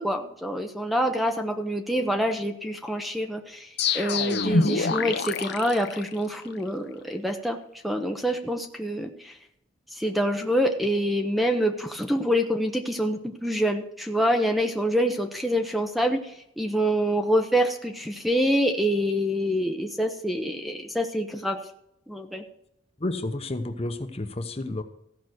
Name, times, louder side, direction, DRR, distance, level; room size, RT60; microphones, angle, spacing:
voice 1, 0.0-7.6 7.8-9.4 9.9-21.6 22.1-22.4, equal, ahead, 5 dB, 0.8 m, -26 dB
sound 1, 3.8-6.6, left 4 dB, 60° left, 0.8 m, -26 dB
voice 2, 23.0-24.8, left 2 dB, 35° left, 8 dB, 0.9 m, -31 dB
15.0 x 5.9 x 6.3 m, 0.77 s
head